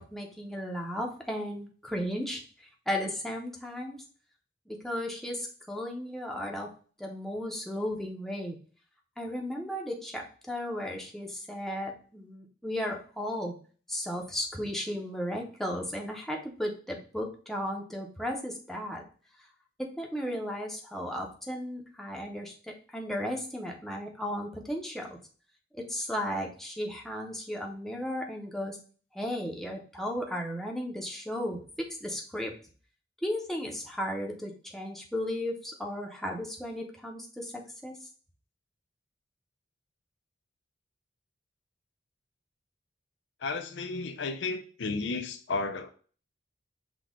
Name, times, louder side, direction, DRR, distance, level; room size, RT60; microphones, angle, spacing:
voice 1, 0.0-2.4 2.9-4.0 4.7-6.7 7.0-8.6 9.2-13.6 13.9-19.0 19.8-25.2 25.7-28.8 29.1-32.5 33.2-37.9, equal, ahead, 0 dB, 0.7 m, -35 dB
voice 2, 43.4-45.9, left 3 dB, 75° left, 8 dB, 0.5 m, -33 dB
6.0 x 2.3 x 3.6 m, 0.40 s
head